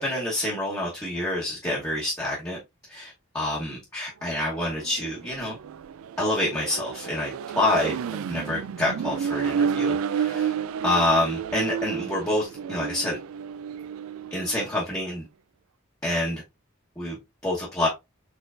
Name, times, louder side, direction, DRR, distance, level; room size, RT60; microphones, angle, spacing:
voice 1, 0.0-2.6 2.9-5.6 6.2-7.9 8.3-10.6 10.8-13.2 14.3-15.3 16.0-16.4 17.0-17.9, left 1 dB, 15° left, 1.1 m, -27 dB
Accelerating revving vroom, 4.4-14.8, right 7 dB, 85° right, 0.3 m, -31 dB
4.4 x 3.8 x 2.5 m
head